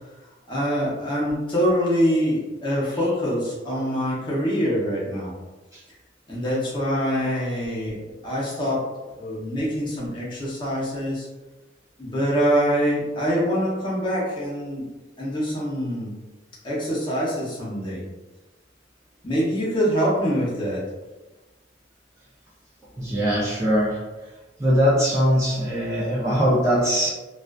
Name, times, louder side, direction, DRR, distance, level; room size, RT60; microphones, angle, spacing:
voice 1, 0.5-5.3 6.3-11.3 12.0-14.9 15.2-16.1 16.6-18.1 19.2-20.9, equal, 25° left, -6 dB, 0.7 m, -24 dB
voice 2, 23.0-24.3 24.6-27.1, equal, 15° right, -7 dB, 0.4 m, -22 dB
2.4 x 2.3 x 2.2 m, 1.2 s
head